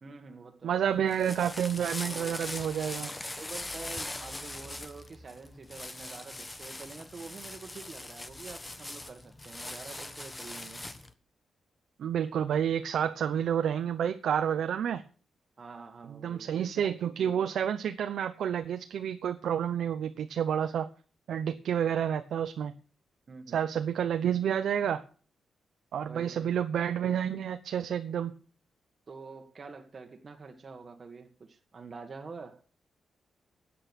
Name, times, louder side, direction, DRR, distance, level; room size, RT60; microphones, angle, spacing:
voice 1, 0.0-0.8 2.0-2.4 3.4-10.8 15.6-16.5 23.3-23.6 26.0-26.5 29.1-32.6, right 4 dB, 35° right, 1.7 m, -47 dB
voice 2, 0.6-3.1 12.0-15.0 16.2-20.9 21.3-22.7 23.5-25.0 25.9-28.3, right 9 dB, 75° right, 0.8 m, -29 dB
sound 1, 0.9-11.1, left 2 dB, 15° left, 1.2 m, -41 dB
13.0 x 8.8 x 6.3 m
wide cardioid pair, 140°, 0 cm